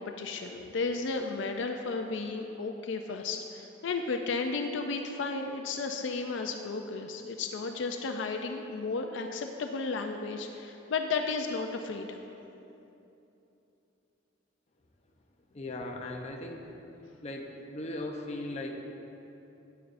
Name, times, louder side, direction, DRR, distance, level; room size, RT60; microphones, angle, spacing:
voice 1, 0.0-12.2, left 4 dB, 75° left, 4 dB, 0.4 m, -33 dB
voice 2, 15.5-16.6 17.2-17.4 17.7-18.7, left 2 dB, 35° left, 1 dB, 0.7 m, -37 dB
9.4 x 9.3 x 2.6 m, 2.9 s
head